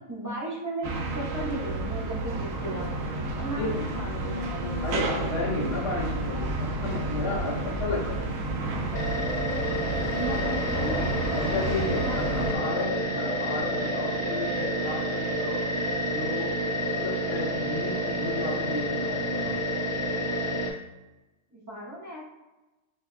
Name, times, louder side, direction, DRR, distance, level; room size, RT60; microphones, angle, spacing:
voice 1, 0.1-3.0 3.4-4.8 5.2-5.4 10.2-11.6 12.0-12.9 21.5-22.2, right 1 dB, 20° right, -7 dB, 0.5 m, -36 dB
sound 1, 0.8-12.5, right 2 dB, 70° right, 0.8 m, -31 dB
voice 2, 4.8-8.2 11.4-15.6 16.0-16.6 16.9-19.5, left 2 dB, 85° left, -5 dB, 1.7 m, -33 dB
sound 2, 8.9-20.7, equal, 50° left, 0.8 m, -29 dB
4.8 x 2.2 x 2.4 m, 1.1 s
omnidirectional pair, 1.7 m